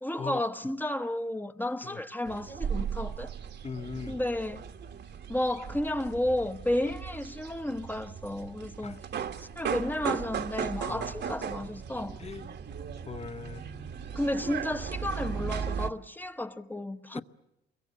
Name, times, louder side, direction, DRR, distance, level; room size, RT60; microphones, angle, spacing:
voice 1, 0.0-3.3 4.1-4.6 5.3-9.0 9.4-12.2 14.1-17.2, left 1 dB, 10° left, 1.0 m, -32 dB
sound 1, 2.3-15.9, right 7 dB, 60° right, 1.4 m, -37 dB
voice 2, 3.6-4.2 8.8-9.0 10.8-11.2 12.2-12.6 13.1-13.6 17.1-17.2, left 5 dB, 30° left, 1.1 m, -39 dB
28.0 x 23.0 x 8.3 m
cardioid pair, 90°, 20 cm